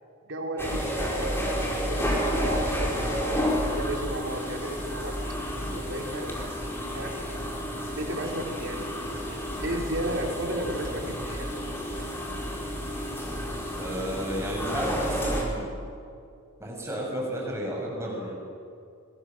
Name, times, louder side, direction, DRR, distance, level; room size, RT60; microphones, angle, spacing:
voice 1, 0.2-5.2 5.8-6.3 6.9-7.2 8.0-9.0 9.3-11.5 11.9-12.1, right 1 dB, 60° right, 1 dB, 3.9 m, -34 dB
sound 1, 0.6-15.4, equal, 10° left, 5.1 m, -30 dB
voice 2, 13.7-15.7 16.6-18.4, equal, 15° right, -2 dB, 7.1 m, -32 dB
29.5 x 21.5 x 7.5 m, 2.4 s
head